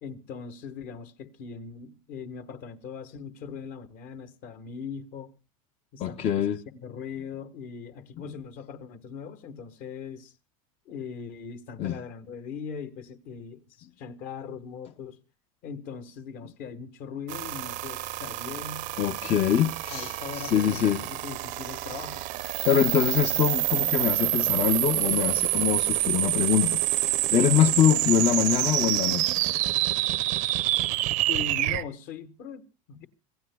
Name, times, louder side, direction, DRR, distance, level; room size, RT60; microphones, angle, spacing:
voice 1, 0.0-5.3 5.9-6.5 6.8-10.3 10.9-15.2 15.6-18.9 19.9-22.3 31.3-33.1, left 6 dB, 50° left, 1.4 m, -40 dB
voice 2, 6.0-6.6 11.8-11.9 19.0-21.0 22.7-29.4, left 9 dB, 35° left, 0.7 m, -24 dB
sound 1, 17.3-31.8, right 16 dB, 45° right, 0.6 m, -27 dB
25.5 x 16.5 x 2.2 m
supercardioid pair, 125°, 18 cm